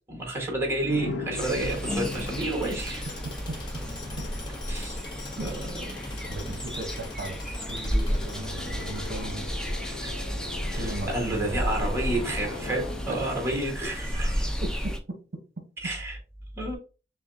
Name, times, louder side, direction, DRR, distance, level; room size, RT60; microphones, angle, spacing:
voice 1, 0.1-3.1 4.7-5.0 5.4-5.9 9.9-10.1 10.7-14.5 15.8-16.2 16.5-16.8, right 1 dB, 15° right, 1 dB, 1.2 m, -30 dB
sound 1, 0.8-14.7, left 3 dB, 65° left, 0.6 m, -41 dB
sound 2, 1.3-15.0, equal, 5° left, 0.4 m, -32 dB
Tools, 1.4-9.7, left 3 dB, 25° left, 0.9 m, -44 dB
voice 2, 6.3-9.6 10.8-11.9 12.2-12.3 14.6-15.2, right 2 dB, 55° right, 4 dB, 0.9 m, -37 dB
6.1 x 2.3 x 2.5 m, 0.33 s
head